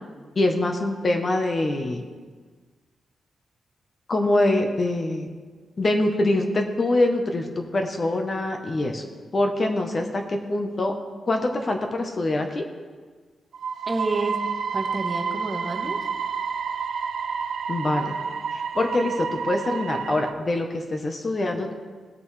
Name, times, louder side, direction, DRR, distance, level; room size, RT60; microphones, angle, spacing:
voice 1, 0.4-2.1 4.1-5.3 5.8-9.0 9.3-10.9 11.3-12.6 17.7-18.2 18.5-21.7, left 2 dB, 30° left, 4 dB, 0.8 m, -24 dB
sound 1, 13.5-20.3, right 6 dB, 55° right, 0.4 m, -29 dB
voice 2, 13.9-16.1, right 2 dB, 20° right, 3 dB, 0.8 m, -29 dB
17.0 x 6.0 x 3.2 m, 1.5 s
wide cardioid pair, 180°, 0 cm